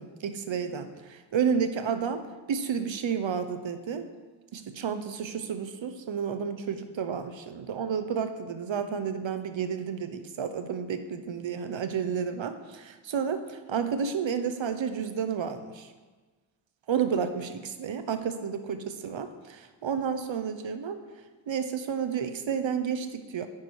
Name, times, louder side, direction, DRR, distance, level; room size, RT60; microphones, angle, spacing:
voice 1, 0.0-4.1 4.5-15.9 16.9-21.0 21.5-23.5, right 7 dB, 75° right, 9 dB, 1.0 m, -31 dB
9.7 x 9.6 x 4.8 m, 1.3 s
wide cardioid pair, 140°, 46 cm